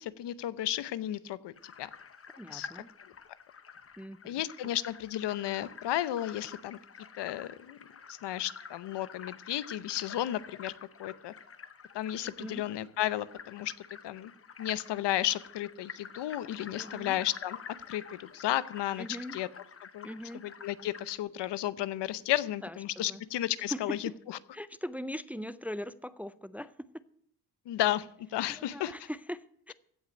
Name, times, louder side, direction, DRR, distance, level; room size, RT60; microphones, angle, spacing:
voice 1, 0.0-1.5 1.8-1.9 2.5-2.7 4.2-6.8 7.2-7.8 8.1-10.7 11.0-11.3 11.9-13.7 14.0-14.3 14.6-17.6 17.9-19.1 19.3-19.5 19.9-20.1 20.3-24.0 27.7-28.9, left 13 dB, 90° left, 0.8 m, -33 dB
sound 1, 1.6-21.2, left 6 dB, 35° left, 0.9 m, -49 dB
voice 2, 2.4-2.9 4.0-4.4 12.2-12.6 16.7-17.2 19.0-19.4 20.0-20.4 22.6-23.2 23.7-24.2 24.5-26.9 28.5-29.7, equal, 5° right, 0.4 m, -41 dB
15.5 x 5.9 x 8.9 m
cardioid pair, 105°, 40 cm